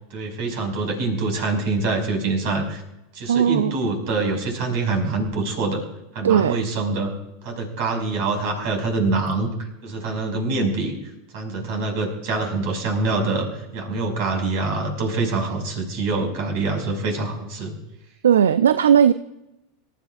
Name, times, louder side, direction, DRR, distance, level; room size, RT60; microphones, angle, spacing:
voice 1, 0.1-2.8 3.1-5.8 6.1-7.1 7.4-9.5 9.8-10.9 11.3-17.7, right 3 dB, 55° right, 3 dB, 5.7 m, -25 dB
voice 2, 3.3-3.7 6.2-6.6 18.2-19.1, right 8 dB, 80° right, 14 dB, 0.4 m, -17 dB
26.5 x 13.5 x 2.5 m, 0.90 s
hypercardioid pair, 85°, 0 cm